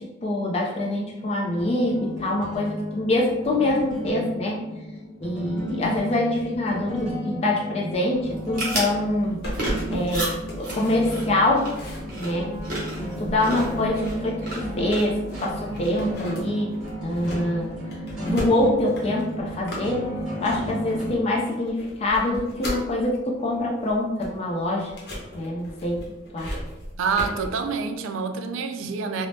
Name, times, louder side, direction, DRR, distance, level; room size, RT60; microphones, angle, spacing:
voice 1, 0.0-4.6 5.2-9.4 9.9-11.7 12.2-12.5 13.0-16.7 17.0-17.7 18.2-20.0 20.4-24.9 25.3-26.1 26.3-26.5, left 1 dB, 30° left, -2 dB, 0.3 m, -25 dB
sound 1, 1.5-21.0, equal, 5° right, 0.9 m, -34 dB
sound 2, 8.3-16.1, right 1 dB, 45° right, 1.0 m, -34 dB
sound 3, 9.4-15.3 15.7-22.9 23.4-27.5, equal, 50° left, 0.7 m, -37 dB
voice 2, 27.0-29.3, right 5 dB, 85° right, 7 dB, 0.3 m, -27 dB
2.6 x 2.0 x 3.2 m, 1.0 s
head